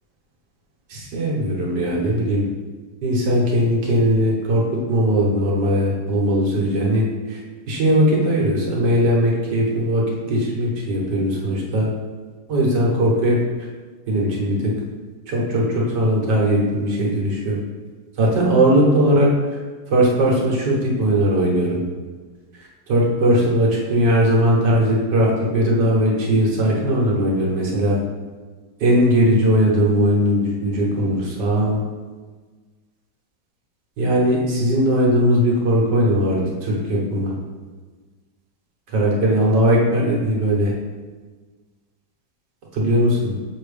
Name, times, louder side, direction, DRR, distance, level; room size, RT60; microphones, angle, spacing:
voice 1, 0.9-2.5 3.0-7.4 7.7-11.9 12.5-13.4 14.1-14.7 15.3-17.6 18.2-19.3 19.9-21.8 22.9-28.0 28.8-31.8 34.0-37.3 38.9-40.7 42.7-43.3, equal, 75° right, -3 dB, 1.8 m, -19 dB
7.0 x 3.0 x 5.0 m, 1.4 s
omnidirectional pair, 1.9 m